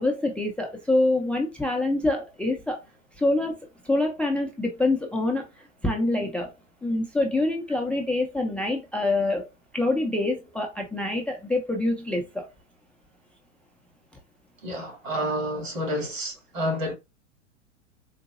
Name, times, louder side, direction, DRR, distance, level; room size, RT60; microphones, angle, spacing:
voice 1, 0.0-2.8 3.2-3.6 3.8-5.4 5.8-6.5 6.8-12.5, left 2 dB, 5° left, 0.4 m, -25 dB
voice 2, 14.6-16.9, equal, 80° right, 2.1 m, -29 dB
3.9 x 2.6 x 2.4 m
hypercardioid pair, 100°, 38 cm